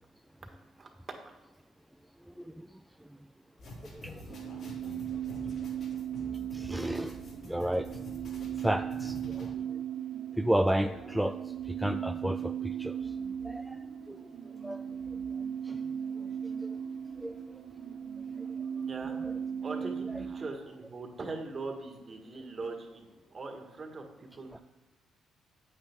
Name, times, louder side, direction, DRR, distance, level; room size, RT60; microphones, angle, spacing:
voice 1, 0.8-1.3 18.8-19.2 19.6-24.6, right 3 dB, 40° right, 3 dB, 1.6 m, -41 dB
sound 1, 3.6-9.5, left 1 dB, 70° left, 3.4 m, -47 dB
voice 2, 3.8-4.1 6.5-7.2 7.4-7.9 8.6-9.5 10.4-13.0 13.4-13.8 14.1-14.2 14.6-14.8 15.7-15.8 16.6-16.7 17.2-17.3 19.2-19.3, right 1 dB, 5° right, 8 dB, 0.3 m, -32 dB
sound 2, 4.3-20.5, right 8 dB, 85° right, 0.7 m, -37 dB
8.9 x 8.5 x 3.5 m, 1.1 s
cardioid pair, 90°, 0 cm